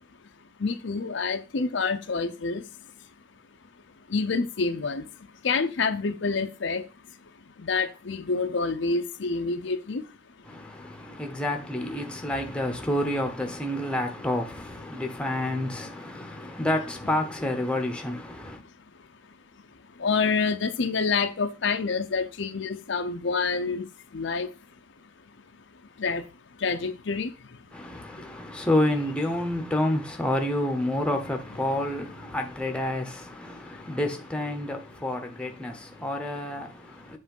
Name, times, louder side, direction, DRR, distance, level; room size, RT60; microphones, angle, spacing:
voice 1, 0.6-2.7 4.1-6.8 7.2-7.3 7.6-10.1 16.1-16.5 20.0-24.5 26.0-26.3 26.6-27.6 33.7-33.8, left 4 dB, 65° left, 0.6 m, -28 dB
voice 2, 10.4-18.6 27.7-37.2, left 1 dB, 5° left, 0.9 m, -29 dB
7.4 x 3.3 x 5.3 m
head